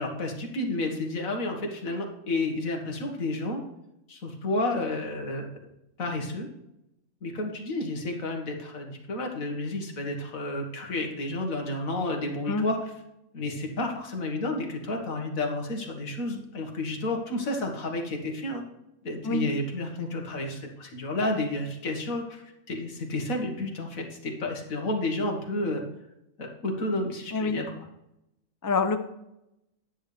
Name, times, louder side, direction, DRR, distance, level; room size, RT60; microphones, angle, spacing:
voice 1, 0.0-3.6 4.1-5.5 6.0-6.5 7.2-12.9 13.3-18.6 19.0-25.9 26.4-27.7, left 2 dB, 80° left, 2 dB, 2.1 m, -31 dB
voice 2, 28.6-29.0, left 4 dB, 25° left, 8 dB, 0.4 m, -26 dB
9.8 x 9.4 x 3.4 m, 0.85 s
omnidirectional pair, 1.4 m